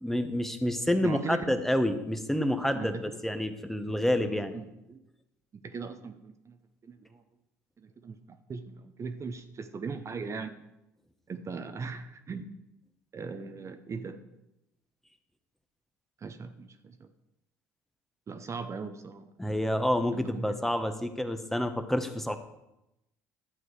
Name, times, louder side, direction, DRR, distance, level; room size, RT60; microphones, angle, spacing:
voice 1, 0.0-3.0 3.2-4.5 19.4-22.4, left 1 dB, 5° left, 8 dB, 1.2 m, -28 dB
voice 2, 1.0-1.6 2.7-3.2 3.9-4.0 4.5-5.0 5.5-6.6 6.8-7.2 7.8-10.5 11.3-12.5 13.1-14.2 16.2-17.1 18.3-19.3 20.1-20.6, right 5 dB, 35° right, 9 dB, 0.9 m, -39 dB
12.0 x 7.7 x 4.9 m, 0.90 s
hypercardioid pair, 60°, 9 cm